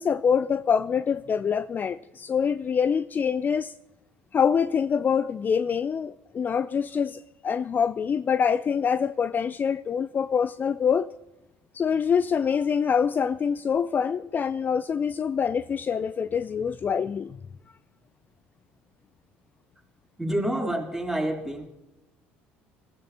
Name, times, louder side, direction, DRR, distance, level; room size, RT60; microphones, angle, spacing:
voice 1, 0.0-3.7 4.3-11.1 11.7-17.4, left 7 dB, 35° left, 0.4 m, -25 dB
voice 2, 20.2-21.7, right 1 dB, 5° right, 3.6 m, -28 dB
24.0 x 14.5 x 2.9 m
hypercardioid pair, 65°, 5 cm